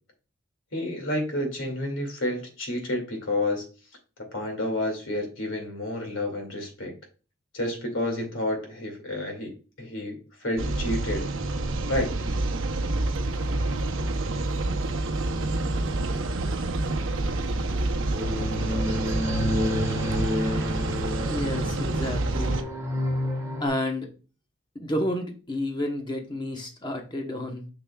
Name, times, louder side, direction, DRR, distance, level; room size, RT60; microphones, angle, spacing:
voice 1, 0.7-3.7 4.3-6.9 7.5-11.3 11.9-12.1, left 1 dB, 65° left, 3 dB, 2.4 m, -30 dB
sound 1, 10.6-22.6, right 2 dB, 70° right, 0.7 m, -28 dB
sound 2, 18.1-23.7, left 1 dB, 15° right, 1.5 m, -29 dB
voice 2, 21.3-22.6 23.6-24.1 24.7-27.7, left 1 dB, 20° left, 2 dB, 1.1 m, -30 dB
6.9 x 6.0 x 2.3 m, 0.35 s
head